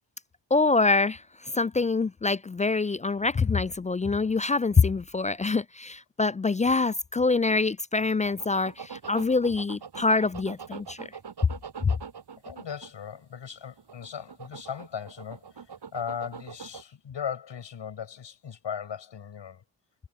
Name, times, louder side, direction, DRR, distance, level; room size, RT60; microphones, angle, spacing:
voice 1, 0.5-11.1 11.8-11.9, left 3 dB, 20° left, 0.3 m, -25 dB
sound 1, 8.3-13.2 13.8-16.8, right 6 dB, 60° right, 6.1 m, -43 dB
voice 2, 12.4-19.6, left 8 dB, 65° left, 6.9 m, -38 dB
supercardioid pair, 45°, 46 cm